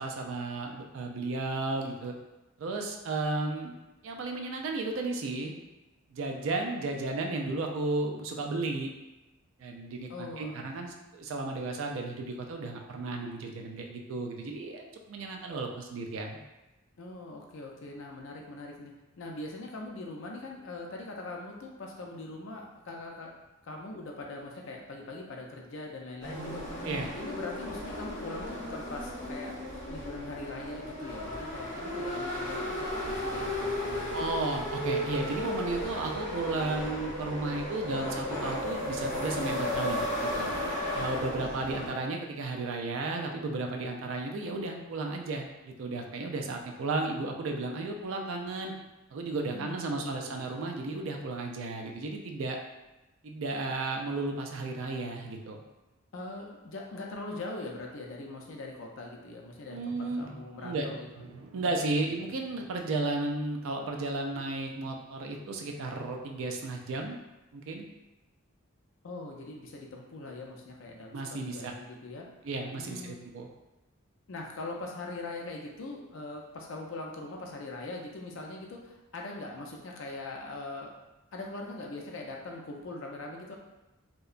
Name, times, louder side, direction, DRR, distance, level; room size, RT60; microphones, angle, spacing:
voice 1, 0.0-2.1 2.6-3.7 4.0-5.5 6.1-8.9 9.6-16.4 26.8-27.1 34.1-40.5 40.9-48.7 49.1-52.6 53.2-55.6 59.7-60.3 60.6-67.2 67.5-67.9 71.1-71.7 72.4-73.5, right 2 dB, 65° right, 2 dB, 0.4 m, -34 dB
voice 2, 10.1-10.6 17.0-23.3 23.6-26.7 27.2-29.6 29.9-34.1 49.5-50.4 56.1-61.1 69.0-72.3 72.7-73.2 74.3-80.9 81.3-83.5, left 2 dB, 60° left, 0 dB, 0.4 m, -41 dB
sound 1, 26.2-41.9, left 1 dB, 35° left, 0.8 m, -34 dB
2.7 x 2.1 x 2.4 m, 1.0 s
head